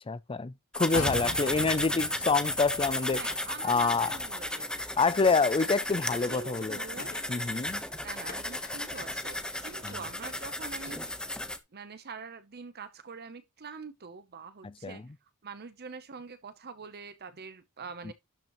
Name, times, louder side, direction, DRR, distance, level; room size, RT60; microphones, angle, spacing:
voice 1, 0.0-3.2 3.6-4.2 5.0-6.8 7.3-7.8 9.8-10.0 14.6-15.0 18.0-18.1, left 4 dB, 25° left, 0.5 m, -27 dB
sound 1, 0.7-11.6, left 1 dB, 5° left, 1.0 m, -34 dB
sound 2, 0.9-4.7 5.0-5.1, left 2 dB, 80° left, 3.3 m, -40 dB
voice 2, 1.4-1.8 3.1-4.7 6.2-7.2 8.0-11.0 11.7-15.0 15.4-18.1, right 5 dB, 45° right, 0.8 m, -44 dB
sound 3, 6.2-7.3 7.7-11.1, left 5 dB, 45° left, 1.5 m, -51 dB
12.0 x 6.7 x 3.1 m
head